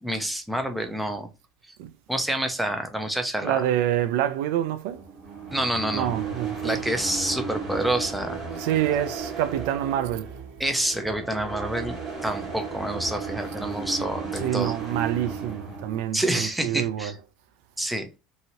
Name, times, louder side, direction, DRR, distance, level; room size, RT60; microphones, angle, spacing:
voice 1, 0.0-1.3 1.7-1.8 2.1-3.6 5.5-6.2 6.6-8.4 10.6-14.8 16.1-17.2 17.8-18.2, right 1 dB, 5° right, 0.6 m, -28 dB
voice 2, 3.4-5.0 5.9-6.8 8.6-10.3 14.3-17.2, right 11 dB, 80° right, 0.3 m, -27 dB
sound 1, 4.9-16.0, right 5 dB, 35° right, 1.8 m, -34 dB
2.8 x 2.7 x 2.7 m
supercardioid pair, 115°, 0 cm